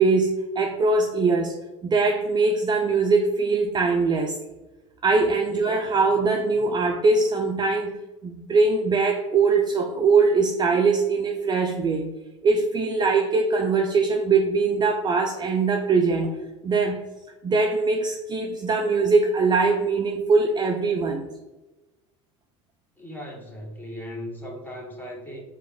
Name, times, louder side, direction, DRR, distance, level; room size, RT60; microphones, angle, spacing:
voice 1, 0.0-1.6 1.8-4.4 5.0-7.9 8.2-12.1 12.4-17.0 17.4-21.2, right 4 dB, 25° right, 3 dB, 0.4 m, -22 dB
voice 2, 23.0-25.4, equal, 10° left, -1 dB, 1.3 m, -37 dB
4.7 x 2.4 x 3.5 m, 1.1 s
hypercardioid pair, 75°, 16 cm